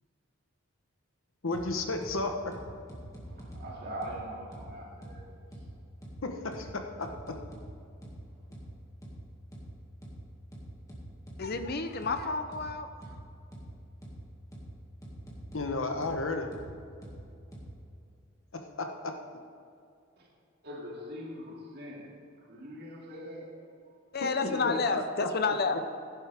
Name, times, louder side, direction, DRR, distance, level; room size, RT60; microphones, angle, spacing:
voice 1, 1.4-2.5 6.2-7.4 15.5-16.5 18.5-19.1 24.2-24.5 24.9-25.3, left 2 dB, 75° left, 4 dB, 1.2 m, -33 dB
sound 1, 1.5-1.6 2.0-2.1 2.5-3.6 4.0-4.1 4.5-4.6 5.0-5.1 5.5-5.6 6.0-6.1 6.5-6.6 7.0-7.6 8.0-8.1 8.5-8.6 9.0-9.1 9.5-9.6 10.0-10.1 10.5-11.6 12.0-12.1 12.5-12.6 13.0-13.1 13.5-13.6 14.0-14.1 14.5-14.6 15.0-15.6 16.0-16.1 16.5-16.6 17.0-17.1 17.5-17.6, equal, 15° left, 2.1 m, -45 dB
voice 2, 3.3-5.5 20.2-20.3 20.6-22.1 22.4-23.7 24.2-24.8, equal, 50° right, -3 dB, 2.6 m, -42 dB
voice 3, 11.4-12.9 24.1-25.8, left 4 dB, 50° left, 8 dB, 0.7 m, -30 dB
16.0 x 10.5 x 3.6 m, 2.4 s
head